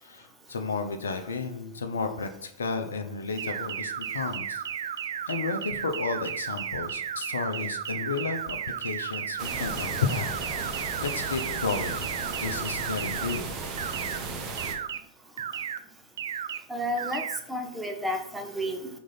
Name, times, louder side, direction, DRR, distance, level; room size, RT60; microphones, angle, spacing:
voice 1, 0.0-4.6 5.3-10.3 10.6-12.1 12.4-13.5, left 4 dB, 70° left, 7 dB, 0.7 m, -32 dB
sound 1, 3.4-13.4 13.8-14.2 14.6-15.0 15.4-15.8 16.2-16.6 17.0-17.4, right 9 dB, 60° right, 0.4 m, -34 dB
gory wodospad, 9.4-14.7, right 3 dB, 35° right, 1.2 m, -35 dB
voice 2, 16.7-18.9, equal, 5° right, 4 dB, 1.0 m, -31 dB
6.3 x 3.9 x 5.6 m, 0.69 s
figure-of-eight pair, 90°, 0 cm